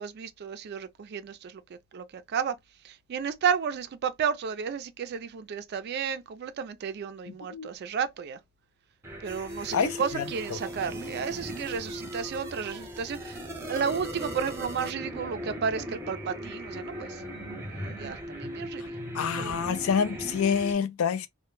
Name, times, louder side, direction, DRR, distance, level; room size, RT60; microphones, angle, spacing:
voice 1, 0.0-2.6 2.8-8.4 9.2-17.2 17.6-19.0 19.4-19.7, right 7 dB, 50° right, 0.3 m, -32 dB
sound 1, 9.0-20.7, equal, 10° right, 0.6 m, -38 dB
voice 2, 9.7-10.2 10.5-10.6 19.1-21.3, left 7 dB, 70° left, 0.4 m, -27 dB
2.1 x 2.1 x 3.0 m
head